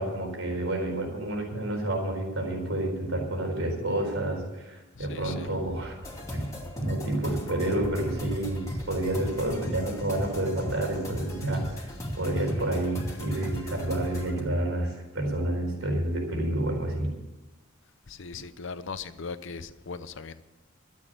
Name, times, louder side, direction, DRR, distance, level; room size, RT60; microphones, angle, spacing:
voice 1, 0.0-6.0 6.3-6.5 6.8-17.1, right 1 dB, 75° right, 4.2 m, -29 dB
voice 2, 4.9-5.7 18.1-20.4, left 4 dB, 65° left, 0.7 m, -39 dB
sound 1, 6.0-14.4, equal, 15° left, 2.7 m, -36 dB
12.5 x 8.4 x 7.7 m
head